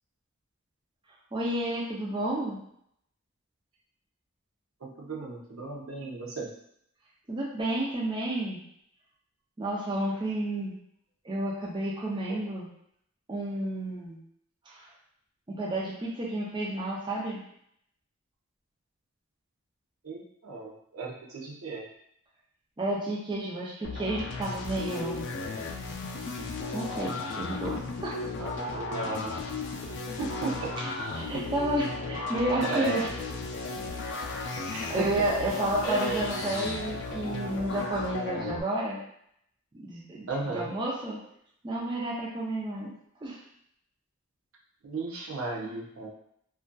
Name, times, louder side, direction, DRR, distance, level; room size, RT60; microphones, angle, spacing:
voice 1, 1.3-2.6 7.3-8.6 9.6-10.7 11.2-12.7 13.3-14.2 14.7-14.8 15.5-17.4 22.8-25.2 26.7-28.2 31.1-33.1 34.9-39.0 39.8-40.3 40.5-41.2 41.6-42.9 43.2-43.4, right 1 dB, 20° right, -5 dB, 0.4 m, -31 dB
voice 2, 4.8-6.6 12.3-12.4 20.0-21.8 28.4-29.4 30.2-30.8 31.3-31.5 32.6-33.1 34.7-35.1 35.8-36.3 40.3-40.7 44.8-46.1, right 3 dB, 80° right, -2 dB, 0.6 m, -34 dB
sound 1, 23.8-38.6, left 3 dB, 55° left, 0.3 m, -35 dB
2.5 x 2.3 x 2.2 m, 0.72 s
head